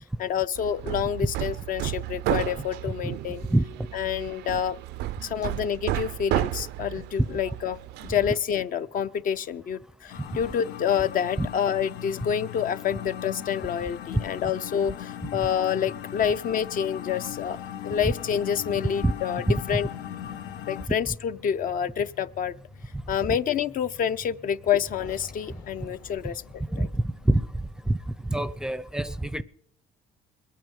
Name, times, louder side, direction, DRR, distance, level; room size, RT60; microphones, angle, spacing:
voice 1, 0.0-3.4 3.9-4.8 5.2-7.8 8.0-17.6 17.8-19.9 20.7-22.5 23.1-26.4 26.8-26.9, left 8 dB, 55° left, 0.6 m, -28 dB
Hammer, 0.5-8.4, right 15 dB, 80° right, 0.4 m, -32 dB
sound 1, 10.1-20.9, left 10 dB, 90° left, 0.8 m, -38 dB
sound 2, 18.4-28.2, left 3 dB, 70° left, 2.6 m, -49 dB
voice 2, 26.7-28.0 28.2-29.4, right 1 dB, 5° right, 0.5 m, -25 dB
22.0 x 9.3 x 5.3 m
cardioid pair, 110°, 17 cm